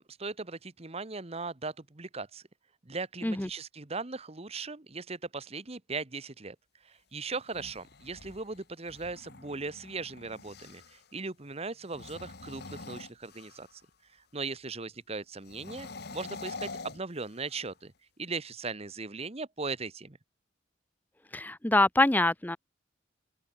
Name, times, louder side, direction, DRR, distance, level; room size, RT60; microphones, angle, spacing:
voice 1, 0.0-2.4 2.8-6.6 6.8-13.7 14.3-17.9 18.2-20.2, right 4 dB, 30° right, 1.1 m, -38 dB
sound 1, 7.3-11.1 11.8-13.9 15.4-17.7, left 3 dB, 55° left, 1.6 m, -46 dB
voice 2, 21.3-22.6, left 2 dB, 10° left, 0.6 m, -25 dB
open air
head